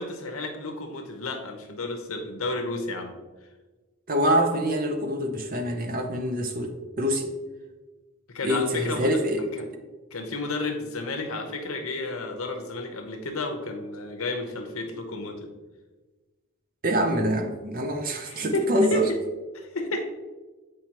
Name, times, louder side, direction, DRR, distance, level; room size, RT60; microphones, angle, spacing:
voice 1, 0.0-3.1 8.3-9.2 9.5-9.7 10.1-15.5 18.2-19.0 19.5-20.1, left 2 dB, 75° left, 4 dB, 0.9 m, -32 dB
voice 2, 4.1-7.3 8.4-9.4 16.8-19.1, equal, 40° right, 6 dB, 0.6 m, -25 dB
7.6 x 4.6 x 2.9 m, 1.3 s
head